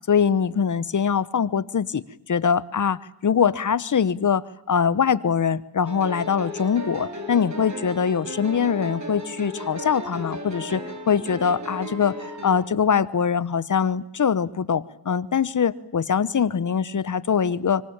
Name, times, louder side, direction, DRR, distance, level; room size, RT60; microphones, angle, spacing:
voice 1, 0.1-2.0 2.3-12.1 12.4-17.8, left 7 dB, 40° left, 18 dB, 1.1 m, -23 dB
sound 1, 5.9-12.6, left 1 dB, 40° right, 6.4 m, -35 dB
24.5 x 24.5 x 8.8 m, 0.80 s
cardioid pair, 85°, 45 cm